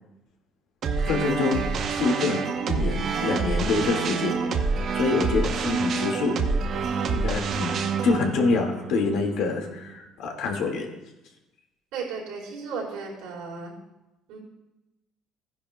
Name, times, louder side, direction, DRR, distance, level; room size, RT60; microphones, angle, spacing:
sound 1, 0.8-10.0, right 5 dB, 45° right, 0.7 m, -27 dB
voice 1, 1.1-2.4 2.7-4.3 4.9-6.4 7.0-7.7 8.0-10.9, left 4 dB, 70° left, 2 dB, 1.8 m, -26 dB
voice 2, 11.9-13.7 14.3-14.4, right 5 dB, 90° right, -4 dB, 4.1 m, -34 dB
15.5 x 10.0 x 2.2 m, 0.98 s
cardioid pair, 145°, 0 cm